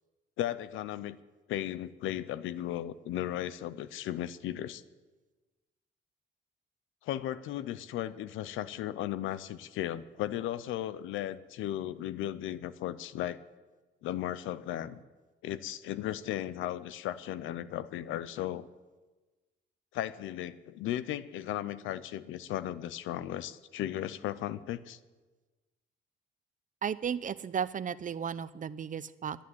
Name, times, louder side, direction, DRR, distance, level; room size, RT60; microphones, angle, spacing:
voice 1, 0.4-1.2 1.5-4.8 7.0-13.4 14.0-15.0 15.4-18.7 19.9-25.0, left 12 dB, 90° left, 16 dB, 0.7 m, -36 dB
voice 2, 26.8-29.4, right 7 dB, 40° right, 16 dB, 0.7 m, -34 dB
11.5 x 10.5 x 9.5 m, 1.2 s
cardioid pair, 90°, 20 cm